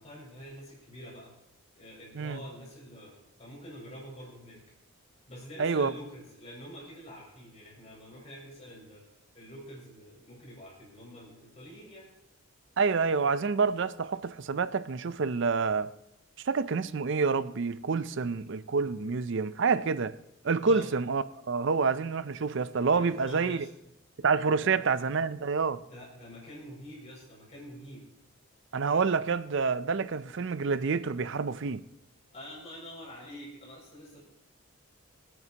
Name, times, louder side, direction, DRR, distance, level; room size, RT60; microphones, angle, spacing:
voice 1, 0.0-1.3 1.7-4.6 5.3-9.1 9.3-12.1 20.6-20.9 22.9-23.7 24.6-24.9 25.8-28.0 32.3-34.2, equal, 30° left, 6.1 m, -46 dB
voice 2, 5.6-5.9 12.8-15.9 16.4-20.1 20.4-23.7 24.2-25.8 28.7-31.8, right 5 dB, 55° right, 0.5 m, -28 dB
26.5 x 9.2 x 2.9 m
head